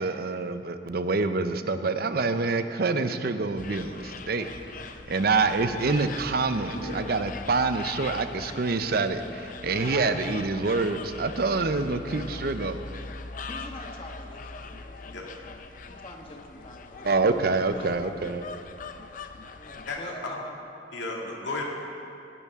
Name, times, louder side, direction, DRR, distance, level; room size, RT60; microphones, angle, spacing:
voice 1, 0.0-4.5 5.1-12.8 17.0-18.5, right 3 dB, 55° right, 10 dB, 0.6 m, -26 dB
sound 1, 3.6-20.1, left 4 dB, 45° left, 0.5 m, -41 dB
voice 2, 6.7-7.0 15.1-15.3 19.9-20.4 20.9-21.6, left 2 dB, 90° left, -2 dB, 2.2 m, -34 dB
voice 3, 9.6-10.2 10.6-10.8 13.5-15.1 15.9-17.1 17.7-18.1 19.6-20.6, left 1 dB, 30° left, 1 dB, 1.4 m, -43 dB
17.0 x 11.5 x 3.6 m, 2.6 s
head